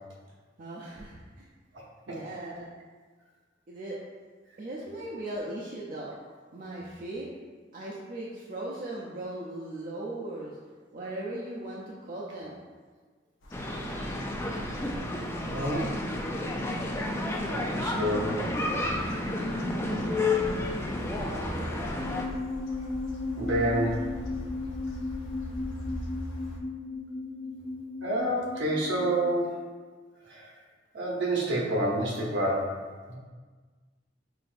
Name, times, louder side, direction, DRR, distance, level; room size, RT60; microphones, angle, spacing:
voice 1, 0.6-1.5 2.1-2.7 3.7-4.0 4.6-6.1 6.5-7.3 7.7-10.6 10.9-12.6 17.2-18.1 21.0-22.0, right 1 dB, 45° right, -5 dB, 0.5 m, -38 dB
sound 1, 13.4-26.6, equal, 80° left, 0.6 m, -42 dB
sound 2, 13.5-22.3, left 2 dB, 15° left, 0.3 m, -31 dB
voice 2, 15.5-15.9 17.4-18.3 23.4-24.0 28.0-29.5 30.3-30.5 30.9-32.7 33.1-33.2, right 1 dB, 70° right, -3 dB, 0.9 m, -28 dB
sound 3, 21.9-29.4, left 3 dB, 45° left, 0.7 m, -36 dB
5.8 x 2.5 x 2.5 m, 1.5 s
head